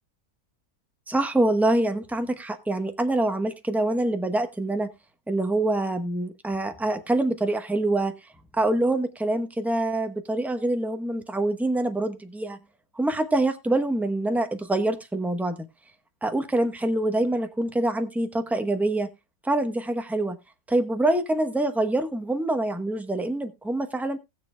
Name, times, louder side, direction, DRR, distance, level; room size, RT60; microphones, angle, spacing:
voice 1, 1.1-4.9 5.3-8.1 8.6-12.6 12.9-15.7 16.2-19.1 19.4-20.4 20.7-24.2, right 2 dB, ahead, 7 dB, 0.9 m, -25 dB
19.5 x 7.1 x 2.3 m, 0.23 s
omnidirectional pair, 1.6 m